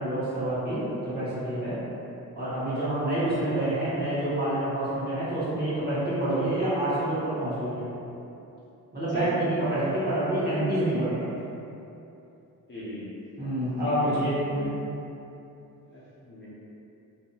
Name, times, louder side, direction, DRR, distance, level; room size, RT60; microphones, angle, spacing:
voice 1, 0.0-1.8 2.4-7.9 8.9-11.2 13.4-14.7, right 1 dB, 30° right, -12 dB, 1.1 m, -27 dB
voice 2, 9.1-9.4 12.7-13.1 14.0-14.1 15.9-16.5, equal, 35° left, -9 dB, 0.5 m, -38 dB
2.6 x 2.3 x 2.7 m, 2.9 s
cardioid pair, 115°, 35 cm